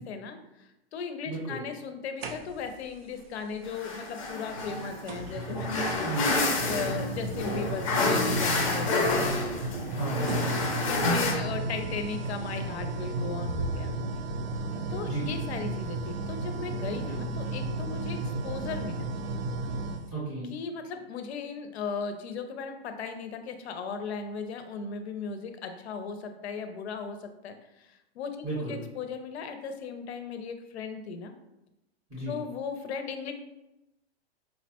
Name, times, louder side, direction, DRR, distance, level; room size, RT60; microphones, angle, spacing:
voice 1, 0.0-6.1 6.6-9.2 10.8-13.9 14.9-19.0 20.5-31.3 32.3-33.3, left 5 dB, 75° left, 7 dB, 0.6 m, -37 dB
voice 2, 1.2-1.6 6.0-6.4 9.9-10.5 15.1-15.3 17.1-17.2 20.1-20.5 28.4-28.8 32.1-32.4, right 2 dB, 10° right, -9 dB, 0.6 m, -34 dB
sound 1, 2.2-2.8 4.2-4.3 5.1-20.1, right 2 dB, 65° right, 0.5 m, -34 dB
sound 2, 3.7-11.3, left 2 dB, 30° left, 0.5 m, -29 dB
4.7 x 2.1 x 2.8 m, 0.94 s
supercardioid pair, 175°, 33 cm